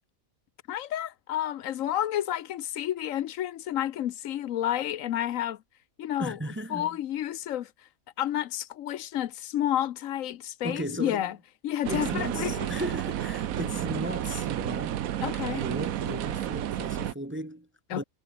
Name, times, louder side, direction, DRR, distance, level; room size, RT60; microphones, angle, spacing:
voice 1, 0.7-5.6 6.0-6.4 6.7-7.7 8.2-11.4 11.6-12.7 15.2-15.6 17.9-18.0, left 12 dB, 75° left, 1.1 m, -30 dB
voice 2, 6.2-7.0 10.6-11.3 11.9-15.1 15.5-18.0, equal, 10° right, 0.6 m, -36 dB
sound 1, 11.8-17.1, right 11 dB, 90° right, 1.2 m, -31 dB
omnidirectional pair, 1.4 m